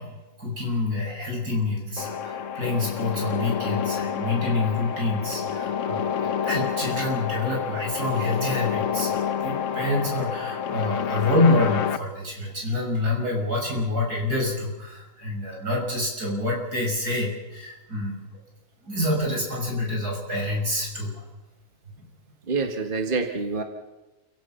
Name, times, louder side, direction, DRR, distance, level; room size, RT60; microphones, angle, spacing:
voice 1, 0.0-18.2 18.9-21.2 22.0-22.1, left 2 dB, 90° right, -1 dB, 7.0 m, -27 dB
sound 1, 2.0-12.0, left 8 dB, 60° left, 1.1 m, -29 dB
voice 2, 22.5-23.6, right 4 dB, 35° right, 4 dB, 1.9 m, -26 dB
28.5 x 17.0 x 5.8 m, 1.1 s
omnidirectional pair, 1.6 m